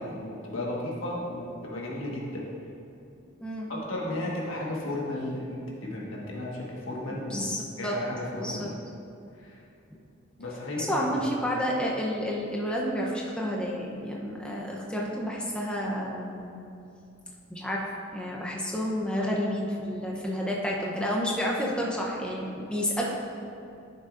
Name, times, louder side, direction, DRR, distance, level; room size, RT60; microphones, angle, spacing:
voice 1, 0.0-2.5 3.7-7.5 7.8-8.7 9.4-9.6 10.4-11.2, left 1 dB, 80° left, -4 dB, 1.5 m, -34 dB
voice 2, 7.3-8.0 8.3-8.7 9.9-10.0 10.8-16.5 17.5-17.8 18.1-23.0, equal, 5° left, -3 dB, 0.7 m, -30 dB
10.5 x 6.6 x 2.5 m, 2.6 s
head